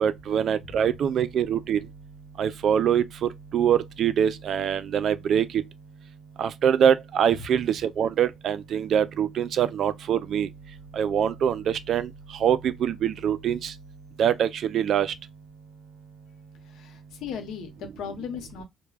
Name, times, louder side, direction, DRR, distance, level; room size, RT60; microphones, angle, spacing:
voice 1, 0.0-1.8 2.4-5.5 6.4-10.5 10.9-12.1 12.4-13.7 14.2-15.1, right 8 dB, 65° right, 0.3 m, -24 dB
voice 2, 16.7-18.6, left 7 dB, 85° left, 0.8 m, -37 dB
2.2 x 2.2 x 3.2 m
cardioid pair, 90°, 0 cm